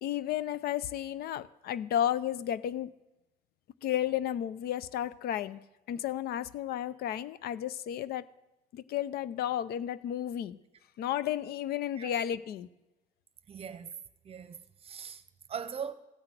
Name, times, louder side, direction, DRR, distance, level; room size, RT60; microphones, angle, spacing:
voice 1, 0.0-2.9 3.8-5.6 5.9-8.2 8.7-10.6 11.0-12.7, left 11 dB, 70° left, 0.5 m, -32 dB
voice 2, 13.5-13.9 14.2-15.2 15.5-15.9, right 7 dB, 35° right, 0.9 m, -40 dB
15.0 x 5.8 x 8.2 m
cardioid pair, 110°, 17 cm